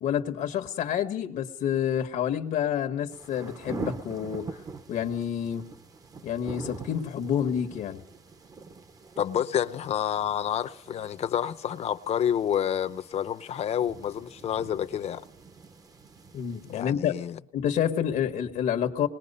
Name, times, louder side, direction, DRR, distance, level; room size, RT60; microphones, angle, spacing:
voice 1, 0.0-4.6 4.9-5.7 6.2-8.0 16.3-17.1 17.5-19.1, left 9 dB, 80° left, 1.4 m, -28 dB
sound 1, 3.1-16.8, right 4 dB, 25° right, 0.8 m, -44 dB
voice 2, 9.2-15.2 16.7-17.4, left 9 dB, 50° left, 0.8 m, -29 dB
25.5 x 20.5 x 5.5 m
cardioid pair, 175°, 14 cm